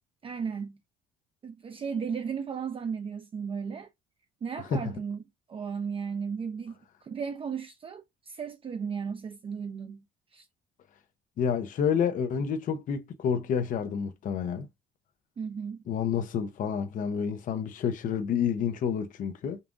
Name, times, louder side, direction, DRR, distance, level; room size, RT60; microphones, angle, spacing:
voice 1, 0.2-0.8 1.4-3.9 4.4-5.2 5.5-10.0 10.3-10.5 15.4-15.8, right 6 dB, 30° right, 0.5 m, -35 dB
voice 2, 11.4-14.7 15.9-19.6, left 7 dB, 55° left, 0.7 m, -29 dB
5.4 x 2.4 x 2.4 m
cardioid pair, 110°, 17 cm